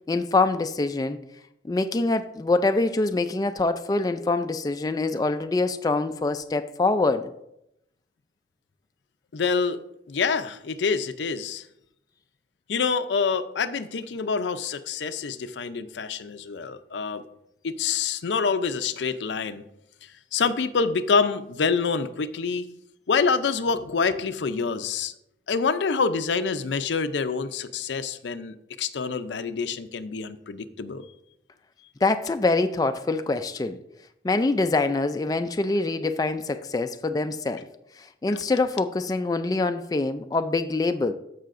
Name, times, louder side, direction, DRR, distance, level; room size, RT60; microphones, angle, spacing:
voice 1, 0.1-1.2 1.6-7.3 32.0-33.8 34.2-37.7 38.0-41.1, left 3 dB, 20° left, 8 dB, 0.3 m, -25 dB
voice 2, 9.3-9.8 10.1-11.7 12.7-17.2 17.6-19.6 20.0-22.7 23.1-25.1 25.5-31.1, left 5 dB, 90° left, 12 dB, 0.5 m, -26 dB
14.0 x 5.6 x 2.5 m, 0.82 s
head